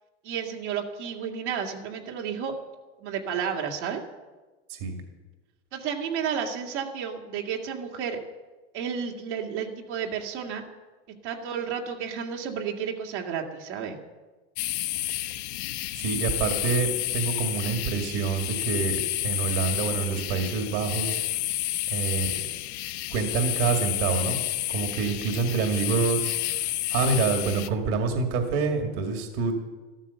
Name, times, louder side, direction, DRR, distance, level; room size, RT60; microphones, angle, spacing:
voice 1, 0.2-2.5 3.0-4.0 5.7-8.2 8.7-10.6 11.2-14.0 24.9-25.0, right 7 dB, 75° right, 1 dB, 2.3 m, -32 dB
voice 2, 4.7-5.0 16.0-21.2 21.9-22.3 23.1-24.4 24.7-29.5, right 5 dB, 60° right, 4 dB, 2.2 m, -27 dB
sound 1, 14.6-27.7, left 15 dB, 65° left, 1.1 m, -30 dB
13.0 x 13.0 x 6.9 m, 1.3 s
hypercardioid pair, 110°, 35 cm